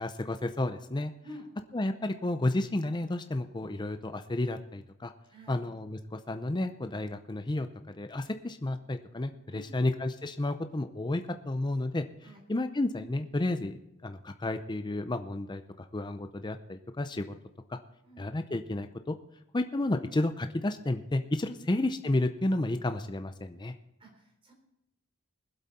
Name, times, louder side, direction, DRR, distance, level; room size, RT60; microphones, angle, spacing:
voice 1, 0.0-1.1 1.7-5.1 5.5-7.7 7.9-12.0 12.5-17.4 17.7-17.8 18.2-19.2 19.5-23.7, left 2 dB, 20° left, 8 dB, 0.6 m, -31 dB
voice 2, 5.3-5.7 9.5-9.8 12.2-12.4 18.0-18.3 21.5-21.7 24.0-24.5, equal, 25° right, 1 dB, 3.8 m, -50 dB
21.5 x 8.0 x 4.2 m, 0.84 s
head